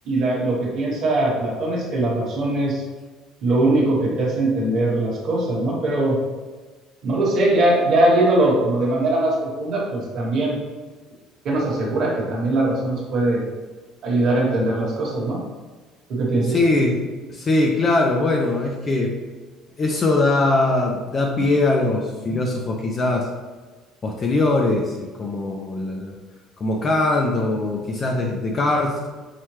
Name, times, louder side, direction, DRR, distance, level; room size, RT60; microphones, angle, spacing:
voice 1, 0.0-2.8 3.4-6.2 7.0-10.6 11.4-13.4 14.0-15.4 16.1-16.6, right 2 dB, 45° right, -4 dB, 1.2 m, -21 dB
voice 2, 16.5-17.0 17.3-19.1 19.8-23.3 24.0-26.1 26.6-29.0, left 2 dB, 25° left, 1 dB, 0.4 m, -21 dB
5.6 x 2.2 x 3.1 m, 1.3 s
cardioid pair, 175°, 0 cm